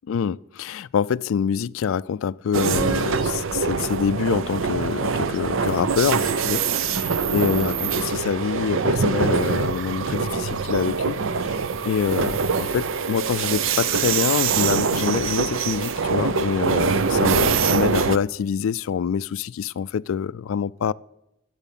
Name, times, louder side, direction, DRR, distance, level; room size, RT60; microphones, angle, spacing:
voice 1, 0.1-11.2 11.9-20.9, left 7 dB, 75° left, 0.3 m, -25 dB
sound 1, 2.5-18.2, right 5 dB, 70° right, 0.6 m, -24 dB
10.5 x 8.5 x 7.3 m
head